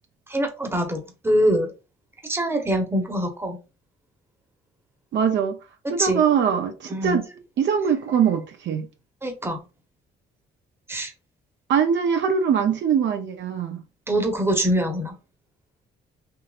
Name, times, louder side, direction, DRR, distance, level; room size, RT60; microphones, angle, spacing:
voice 1, 0.3-1.7 2.2-3.6 5.8-6.2 6.9-7.2 9.2-9.6 10.9-11.1 14.1-15.1, right 1 dB, 10° right, 0.9 m, -24 dB
voice 2, 5.1-5.6 5.9-7.3 7.6-8.9 11.7-13.8, right 7 dB, 70° right, 0.6 m, -22 dB
3.7 x 2.7 x 2.4 m
cardioid pair, 90°, 20 cm